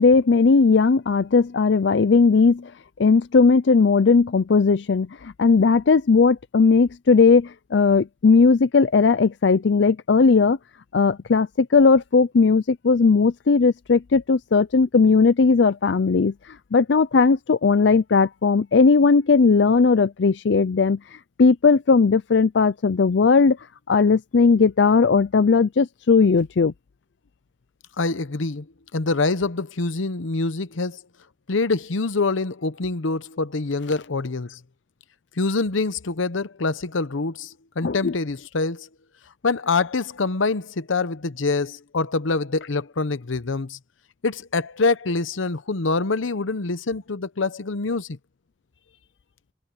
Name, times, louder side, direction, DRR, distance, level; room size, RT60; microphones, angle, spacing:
voice 1, 0.0-2.7 3.0-10.6 10.9-21.0 21.4-23.6 23.9-26.7 37.8-38.1, left 4 dB, 60° left, 0.5 m, -18 dB
voice 2, 28.0-28.7 28.9-31.0 31.5-34.6 35.4-38.9 39.4-43.8 44.2-48.2, left 3 dB, 85° left, 0.9 m, -25 dB
head